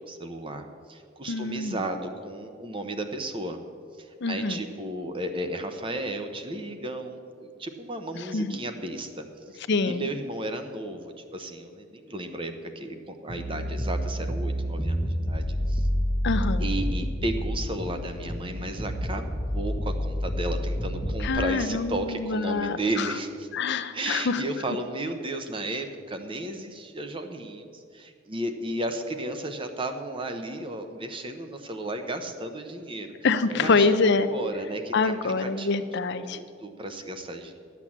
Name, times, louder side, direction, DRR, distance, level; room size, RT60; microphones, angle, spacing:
voice 1, 0.0-3.6 3.9-9.3 9.8-15.9 16.6-23.5 23.9-33.2 33.5-35.8 36.3-37.6, right 1 dB, 25° right, 7 dB, 0.8 m, -34 dB
voice 2, 1.3-1.8 4.2-4.6 8.3-8.6 9.7-10.1 16.2-16.6 21.2-23.1 23.5-24.4 33.2-34.3 34.9-36.4, left 4 dB, 55° left, 11 dB, 0.6 m, -25 dB
sound 1, 13.3-21.3, equal, 10° left, 0.8 m, -29 dB
12.5 x 8.3 x 7.3 m, 2.3 s
head